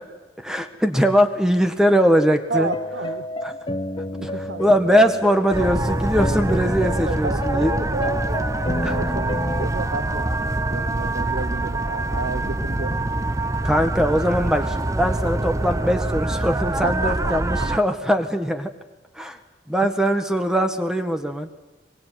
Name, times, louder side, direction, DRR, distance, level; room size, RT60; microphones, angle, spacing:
voice 1, 0.4-2.7 3.4-3.6 4.2-4.3 4.6-7.7 8.8-9.0 13.6-18.7 19.2-19.4 19.7-21.5, equal, 5° right, 7 dB, 1.7 m, -21 dB
sound 1, 2.5-9.7, left 1 dB, 30° left, 0.8 m, -30 dB
voice 2, 2.5-3.2 4.2-4.9 7.0-13.0 16.8-17.7 19.8-19.9, right 3 dB, 85° right, 9 dB, 1.2 m, -31 dB
sound 2, 5.5-17.8, right 2 dB, 20° right, 0.9 m, -25 dB
24.0 x 22.5 x 9.4 m, 1.1 s
head